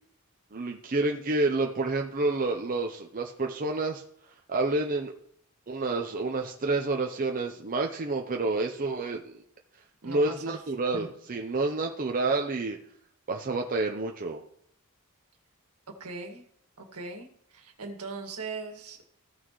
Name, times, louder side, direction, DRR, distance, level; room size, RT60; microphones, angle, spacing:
voice 1, 0.5-4.0 4.5-5.1 5.7-9.3 10.0-12.8 13.3-14.4, right 3 dB, 40° right, 2 dB, 0.7 m, -29 dB
voice 2, 10.0-10.6 10.9-11.1 15.9-16.4 16.8-19.0, right 3 dB, 80° right, 3 dB, 1.8 m, -40 dB
15.5 x 6.3 x 3.1 m, 0.69 s
head